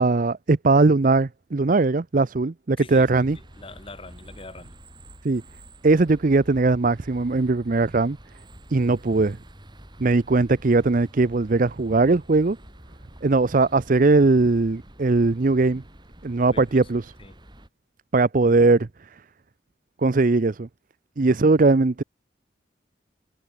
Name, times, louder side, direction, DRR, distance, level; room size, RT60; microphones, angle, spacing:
voice 1, 0.0-3.4 5.2-5.4 5.8-8.2 8.7-9.4 10.0-12.6 13.2-15.8 16.2-17.1 18.1-18.9 20.0-20.7 21.2-22.0, right 3 dB, 45° right, 0.6 m, -20 dB
voice 2, 2.8-3.1 3.3-4.7 16.3-16.9 17.2-17.4, left 3 dB, 30° left, 1.6 m, -44 dB
sound 1, 3.0-17.7, right 1 dB, 25° right, 5.0 m, -48 dB
head